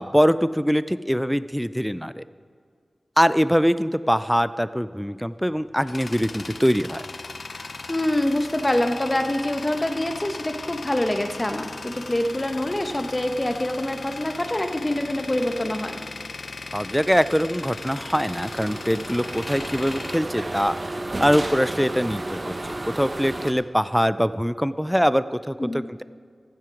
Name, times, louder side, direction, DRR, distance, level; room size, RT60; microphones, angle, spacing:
voice 1, 0.0-2.2 3.2-7.1 16.7-20.7 21.2-22.5 23.0-26.0, equal, ahead, 14 dB, 0.4 m, -23 dB
Tools, 5.4-21.2, left 3 dB, 70° left, 0.5 m, -38 dB
voice 2, 7.9-16.0 25.6-25.8, left 1 dB, 25° left, 6 dB, 1.1 m, -25 dB
sound 1, 17.6-23.5, right 2 dB, 40° right, 0.7 m, -33 dB
15.5 x 7.6 x 5.1 m, 2.1 s
wide cardioid pair, 55°, 0 cm